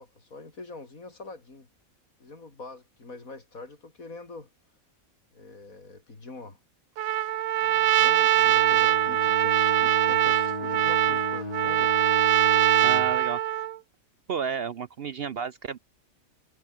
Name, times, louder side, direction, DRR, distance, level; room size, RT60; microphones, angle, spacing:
voice 1, 0.0-1.7 2.2-4.5 5.3-6.6 7.6-11.9, left 3 dB, 75° left, 4.3 m, -43 dB
Trumpet, 7.0-13.8, right 12 dB, 75° right, 1.1 m, -22 dB
Bowed string instrument, 8.3-13.2, left 2 dB, 25° left, 2.9 m, -35 dB
voice 2, 12.8-13.4 14.3-15.8, right 6 dB, 55° right, 0.7 m, -32 dB
omnidirectional pair, 1.5 m